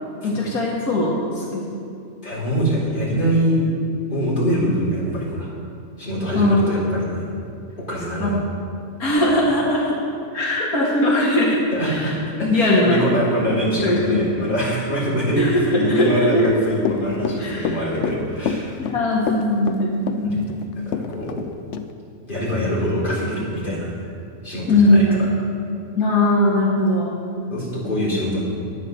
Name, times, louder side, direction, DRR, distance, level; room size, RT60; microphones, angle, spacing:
voice 1, 0.2-1.8 6.4-6.7 8.2-8.3 9.0-10.0 10.3-12.1 12.5-13.1 13.8-14.2 15.4-16.4 17.4-17.8 18.8-20.5 24.7-25.3 26.0-27.2, left 1 dB, 80° left, -4 dB, 2.0 m, -20 dB
voice 2, 2.2-3.6 4.1-5.5 6.0-7.2 7.9-8.4 11.7-18.8 20.2-20.3 20.8-21.4 22.3-24.1 24.4-25.0 27.5-28.4, equal, 35° left, -8 dB, 4.1 m, -23 dB
Run / Walk footsteps, 16.4-21.5 21.7-21.9, left 7 dB, 60° left, 0.9 m, -26 dB
11.5 x 9.2 x 6.7 m, 2.5 s
omnidirectional pair, 1.5 m